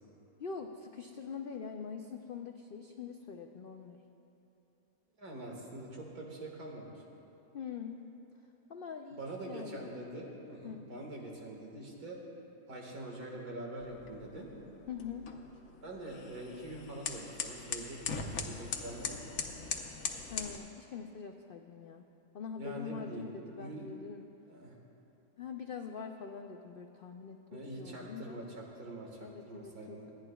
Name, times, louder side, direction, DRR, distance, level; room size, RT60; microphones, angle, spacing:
voice 1, 0.4-4.0 7.5-8.0 8.7-9.2 9.5-9.9 10.6-10.8 14.9-15.3 20.3-22.0 22.3-24.3 25.4-28.4 29.1-30.0, left 6 dB, 85° left, 4 dB, 0.4 m, -44 dB
voice 2, 5.2-6.9 9.1-12.2 12.7-14.5 15.8-19.2 22.6-23.9 24.5-24.8 27.5-30.1, right 1 dB, 80° right, -1 dB, 2.2 m, -44 dB
sound 1, 13.8-20.6, left 5 dB, 65° left, 1.2 m, -41 dB
28.5 x 10.0 x 2.3 m, 3.0 s
omnidirectional pair, 1.6 m